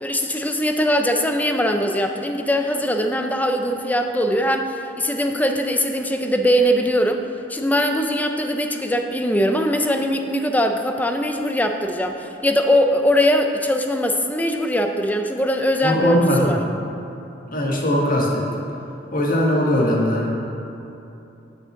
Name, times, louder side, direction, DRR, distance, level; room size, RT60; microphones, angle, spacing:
voice 1, 0.0-7.2 7.5-16.6, equal, 10° left, 5 dB, 0.5 m, -21 dB
voice 2, 15.8-16.7 17.5-18.5 19.1-20.3, left 1 dB, 50° left, -3 dB, 1.5 m, -20 dB
6.3 x 6.0 x 7.0 m, 2.9 s
head